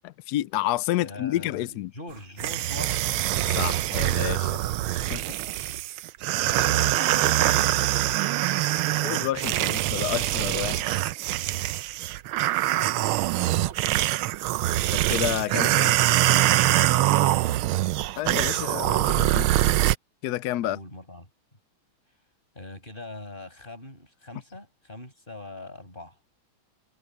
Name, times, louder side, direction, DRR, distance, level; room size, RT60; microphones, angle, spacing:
voice 1, 0.3-1.9 3.5-4.5 5.0-5.2 9.0-10.8 15.1-15.9 18.2-19.5 20.2-20.8, left 14 dB, 85° left, 0.8 m, -29 dB
voice 2, 1.0-3.5 6.5-9.2 9.5-9.9 12.7-13.8 15.5-17.8 20.6-21.3 22.6-26.2, left 2 dB, 25° left, 7.1 m, -42 dB
sound 1, 2.4-19.9, right 15 dB, 85° right, 1.4 m, -24 dB
omnidirectional pair, 2.2 m